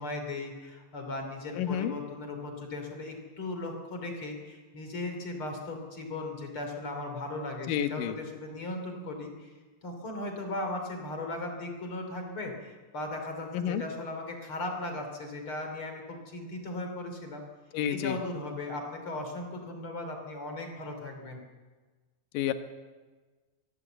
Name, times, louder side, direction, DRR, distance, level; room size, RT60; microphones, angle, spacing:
voice 1, 0.0-9.5 9.8-17.4 17.9-21.4, left 2 dB, 35° left, 4 dB, 3.2 m, -37 dB
voice 2, 1.6-1.9 7.7-8.2 13.5-13.8 17.7-18.2 22.3-22.5, left 10 dB, 70° left, 8 dB, 2.2 m, -29 dB
23.0 x 16.0 x 8.0 m, 1.4 s
omnidirectional pair, 5.2 m